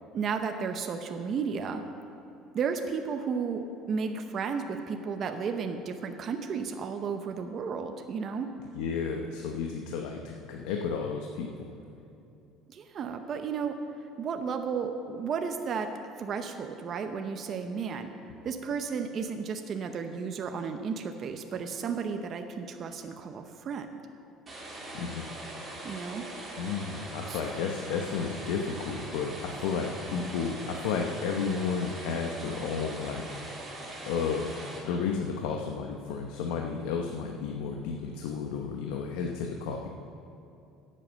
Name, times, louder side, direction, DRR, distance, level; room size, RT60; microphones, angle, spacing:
voice 1, 0.1-1.8 2.5-8.5 12.7-13.8 14.2-15.9 16.2-18.1 18.4-23.9 25.8-26.2 27.3-27.4, right 6 dB, 40° right, 6 dB, 0.7 m, -33 dB
voice 2, 8.7-11.7 24.9-25.3 26.6-33.4 34.0-39.9, left 5 dB, 90° left, 2 dB, 0.8 m, -32 dB
sound 1, 24.5-34.8, right 1 dB, 20° right, 2.8 m, -41 dB
10.5 x 7.7 x 7.6 m, 2.7 s
cardioid pair, 140°, 0 cm